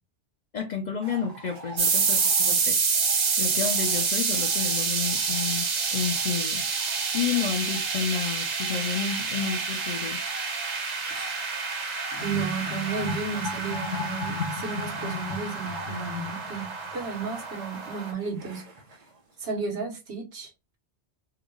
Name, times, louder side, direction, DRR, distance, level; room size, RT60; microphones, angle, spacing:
voice 1, 0.5-6.7 7.1-10.2, left 7 dB, 55° left, 0.5 m, -31 dB
sound 1, 1.0-19.5, right 2 dB, 40° right, 0.8 m, -46 dB
sound 2, 1.8-18.1, right 5 dB, 90° right, 1.4 m, -28 dB
sound 3, 12.2-17.5, left 4 dB, 90° left, 1.2 m, -36 dB
voice 2, 12.2-18.6 19.4-20.8, right 5 dB, 70° right, 1.3 m, -33 dB
3.8 x 2.2 x 3.0 m
omnidirectional pair, 1.1 m